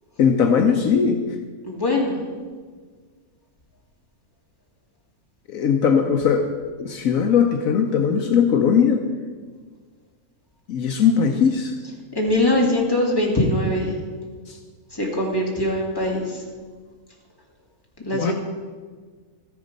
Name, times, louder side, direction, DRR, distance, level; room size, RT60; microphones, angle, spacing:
voice 1, 0.2-1.2 5.5-6.5 6.8-9.1 10.7-11.8 14.5-14.6 18.1-18.3, left 7 dB, 70° left, 5 dB, 1.2 m, -19 dB
voice 2, 1.6-2.2 12.1-13.9 14.9-16.4 18.0-18.3, left 1 dB, 15° left, -2 dB, 2.3 m, -22 dB
13.0 x 10.5 x 5.3 m, 1.5 s
omnidirectional pair, 1.5 m